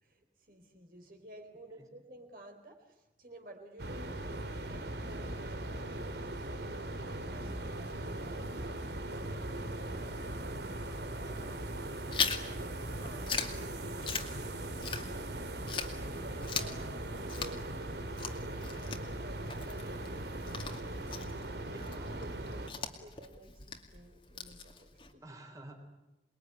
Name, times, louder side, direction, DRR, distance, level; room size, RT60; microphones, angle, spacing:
voice 1, 0.0-7.0 7.3-10.3 11.1-11.5 12.5-15.2 16.1-17.9 18.3-21.2 21.8-25.2, right 1 dB, 50° right, 3 dB, 4.1 m, -54 dB
sound 1, 3.8-22.7, right 1 dB, 75° right, 2.7 m, -39 dB
voice 2, 11.2-11.7 21.6-22.2 25.2-25.7, right 1 dB, 20° right, 1 dB, 4.1 m, -52 dB
Chewing mastication, 12.1-15.4 15.7-25.1, left 5 dB, 30° left, 2.3 m, -40 dB
28.0 x 21.5 x 9.8 m, 0.99 s
head